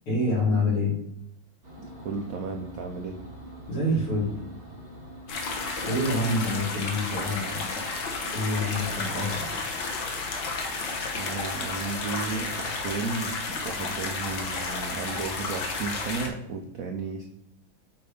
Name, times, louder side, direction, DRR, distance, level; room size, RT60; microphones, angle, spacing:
voice 1, 0.1-0.9 3.7-4.3 5.8-7.6 8.3-9.7, left 1 dB, 85° left, -11 dB, 3.7 m, -27 dB
sound 1, 1.6-13.1, equal, 25° right, 0.9 m, -45 dB
voice 2, 1.8-3.2 11.1-13.3 13.6-17.2, right 4 dB, 70° right, 3 dB, 0.8 m, -34 dB
sound 2, 5.3-16.3, left 3 dB, 60° left, 1.6 m, -32 dB
7.8 x 3.4 x 5.1 m, 0.80 s
omnidirectional pair, 2.3 m